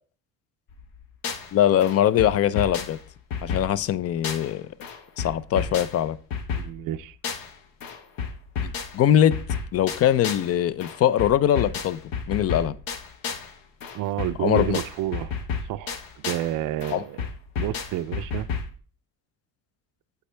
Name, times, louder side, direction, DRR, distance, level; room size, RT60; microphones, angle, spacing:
sound 1, 0.7-1.5 1.8-4.6 4.8-7.6 7.8-10.5 10.8-13.5 13.8-16.5 16.8-18.8, left 6 dB, 75° left, 1.6 m, -32 dB
voice 1, 1.5-3.0 3.4-4.7 5.2-6.2 8.6-9.3 9.7-12.0 12.3-12.8 14.4-14.8 16.9-17.0, left 11 dB, 40° left, 0.5 m, -22 dB
voice 2, 6.6-7.2 13.9-15.4 15.7-17.2 17.6-18.5, right 13 dB, 60° right, 0.5 m, -29 dB
8.4 x 7.9 x 3.3 m
cardioid pair, 150°, 36 cm